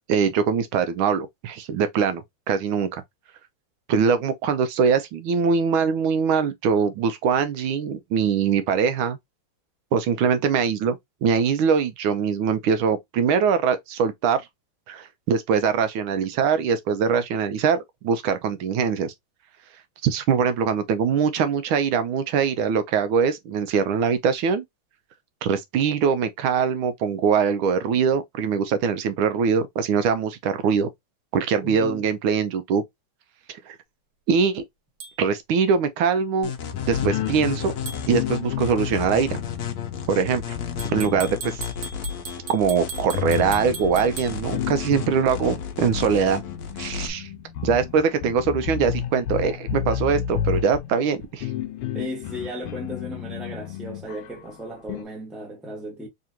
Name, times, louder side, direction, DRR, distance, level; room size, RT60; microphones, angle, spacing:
voice 1, 0.1-3.0 3.9-9.2 9.9-14.4 14.9-19.1 20.0-24.6 25.4-30.9 31.3-32.8 33.5-33.8 34.3-34.6 35.2-36.5 36.9-37.7 38.1-39.4 40.1-40.6 40.9-41.6 42.5-46.4 46.8-47.3 47.6-51.5, right 6 dB, 75° right, 1.4 m, -22 dB
voice 2, 31.6-32.0 51.9-56.1, equal, ahead, 0.6 m, -35 dB
sound 1, 35.0-35.1 37.9-38.1 40.8-44.3, right 6 dB, 60° right, 1.4 m, -38 dB
sound 2, 36.4-47.1, left 7 dB, 60° left, 1.0 m, -33 dB
sound 3, 36.7-41.7 42.0-42.1 42.9-55.0, left 9 dB, 80° left, 1.4 m, -32 dB
3.7 x 3.3 x 2.8 m
omnidirectional pair, 2.4 m